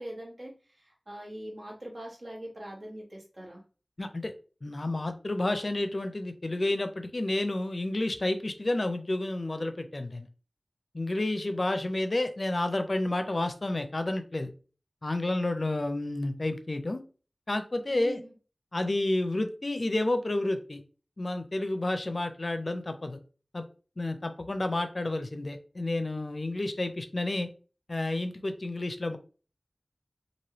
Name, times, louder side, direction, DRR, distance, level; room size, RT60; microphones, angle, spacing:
voice 1, 0.0-3.6 17.9-18.3, right 1 dB, 65° right, -3 dB, 1.4 m, -42 dB
voice 2, 4.0-4.3 4.6-10.3 10.9-14.5 15.0-17.0 17.5-18.2 18.7-20.8 21.2-23.2 23.5-23.6 24.0-27.5 27.9-29.2, left 2 dB, 50° left, 8 dB, 0.4 m, -30 dB
3.1 x 2.6 x 2.9 m, 0.36 s
wide cardioid pair, 60°, 0 cm